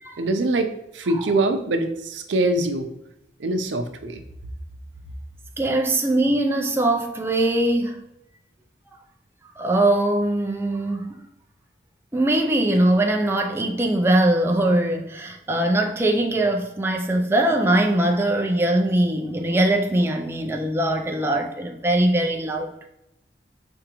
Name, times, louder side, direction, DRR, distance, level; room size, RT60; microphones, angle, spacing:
voice 1, 0.2-2.9 3.4-4.2, right 2 dB, 90° right, 7 dB, 0.6 m, -23 dB
voice 2, 5.6-8.0 9.5-11.3 12.1-22.9, right 1 dB, 15° right, 2 dB, 0.4 m, -21 dB
4.9 x 3.5 x 2.9 m, 0.84 s
head